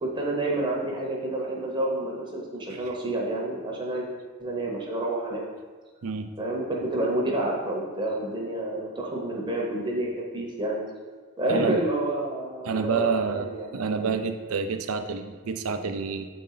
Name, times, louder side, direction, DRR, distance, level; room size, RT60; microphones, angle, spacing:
voice 1, 0.0-4.1 4.4-5.4 6.4-10.8 11.4-14.2, right 1 dB, 20° right, -2 dB, 0.8 m, -29 dB
voice 2, 11.5-11.8 12.6-16.3, right 5 dB, 85° right, 8 dB, 0.5 m, -28 dB
7.6 x 4.2 x 3.9 m, 1.5 s
head